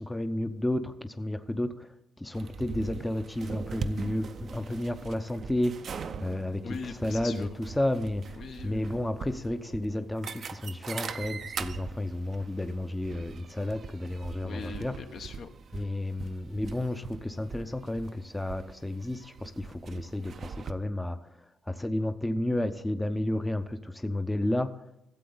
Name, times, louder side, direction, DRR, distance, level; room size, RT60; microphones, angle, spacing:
voice 1, 0.0-1.9 2.2-5.7 6.2-6.6 7.0-7.5 7.8-8.2 8.6-14.9 15.7-21.2 21.7-24.7, left 1 dB, 10° left, 9 dB, 0.6 m, -31 dB
sound 1, 2.3-20.7, right 6 dB, 55° right, 0.5 m, -42 dB
voice 2, 6.6-7.6 8.4-9.0 14.4-16.0, left 5 dB, 60° left, 6 dB, 1.0 m, -42 dB
14.0 x 7.6 x 3.9 m, 0.86 s
cardioid pair, 90°, 0 cm